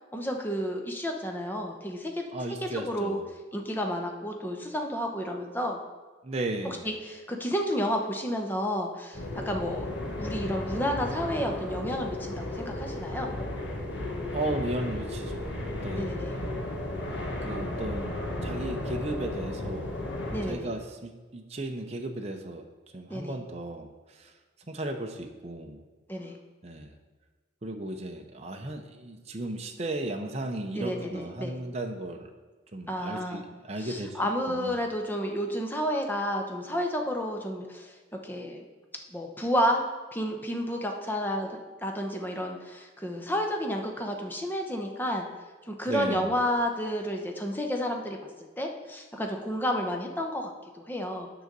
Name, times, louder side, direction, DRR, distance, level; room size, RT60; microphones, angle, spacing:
voice 1, 0.1-2.2 2.6-3.2 3.5-5.8 6.6-9.8 10.2-13.3 16.0-16.4 20.3-20.7 23.1-23.4 26.1-26.3 30.7-31.5 32.9-33.4 33.8-37.9 38.2-38.6 39.1-39.9 40.1-41.5 41.8-45.2 45.7-48.2 48.6-51.3, equal, 10° left, 2 dB, 0.8 m, -31 dB
voice 2, 2.3-3.2 6.2-6.8 14.3-16.2 17.4-20.0 20.5-22.6 22.9-24.3 24.7-25.8 26.6-26.9 27.6-32.3 32.7-34.2 34.5-34.8 45.9-46.3, right 1 dB, 35° right, 3 dB, 0.6 m, -35 dB
sound 1, 9.1-20.5, left 1 dB, 70° left, 1.5 m, -34 dB
9.3 x 3.9 x 6.7 m, 1.3 s
head